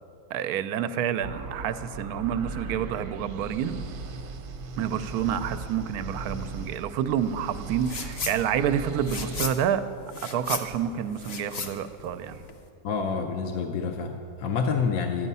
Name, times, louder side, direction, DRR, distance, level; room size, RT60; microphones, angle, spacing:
voice 1, 0.3-3.9 4.8-9.8 10.3-12.4, right 9 dB, 85° right, 11 dB, 1.1 m, -28 dB
sound 1, 1.2-9.5, right 3 dB, 65° right, 1.2 m, -38 dB
sound 2, 7.8-8.4 8.7-12.6, left 4 dB, 50° left, 1.0 m, -35 dB
voice 2, 12.8-15.3, left 5 dB, 70° left, 4 dB, 1.1 m, -28 dB
11.5 x 9.4 x 5.4 m, 2.7 s
omnidirectional pair, 1.6 m